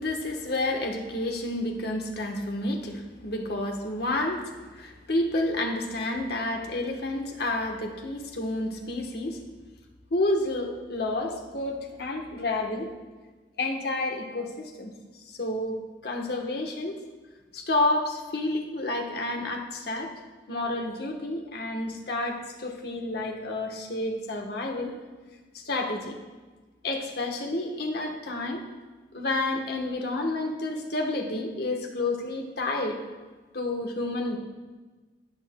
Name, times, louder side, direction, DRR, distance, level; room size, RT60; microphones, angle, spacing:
voice 1, 0.0-9.4 10.1-12.9 13.6-14.9 15.3-15.8 16.0-17.0 17.5-20.1 20.5-24.9 25.5-26.1 26.8-28.6 29.1-33.0 33.5-34.4, left 2 dB, 60° left, 2 dB, 1.2 m, -30 dB
17.0 x 6.2 x 2.2 m, 1.3 s
head